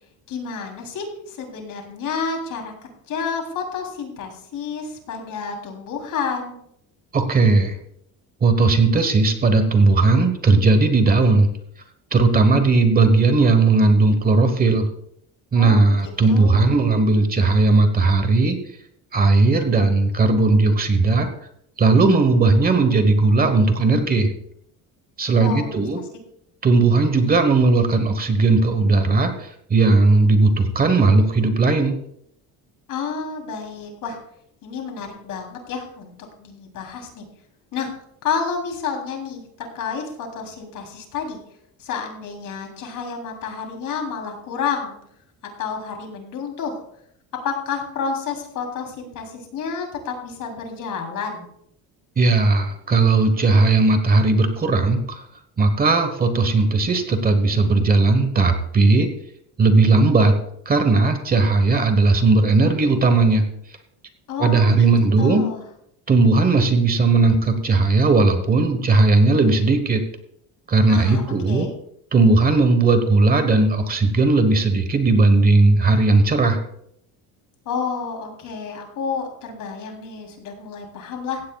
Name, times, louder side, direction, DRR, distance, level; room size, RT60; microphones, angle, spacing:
voice 1, 0.3-2.7 3.1-6.6 15.5-16.0 16.3-16.7 25.4-26.1 32.9-34.2 34.6-36.1 36.4-37.2 37.7-37.9 38.2-41.4 41.8-44.9 45.6-46.8 47.4-51.5 64.3-64.9 65.2-65.6 70.9-71.7 77.6-81.4, left 6 dB, 55° left, 3 dB, 3.4 m, -30 dB
voice 2, 7.1-7.7 8.4-11.5 12.1-14.9 15.5-18.6 19.1-21.3 21.8-24.3 25.2-26.0 26.6-29.3 29.7-32.0 52.2-55.0 55.6-59.1 59.6-60.4 60.7-63.4 64.4-65.5 66.1-70.0 70.7-71.7 72.1-76.6, right 3 dB, 25° right, 8 dB, 1.1 m, -17 dB
16.0 x 15.5 x 2.3 m, 0.73 s
cardioid pair, 155°, 38 cm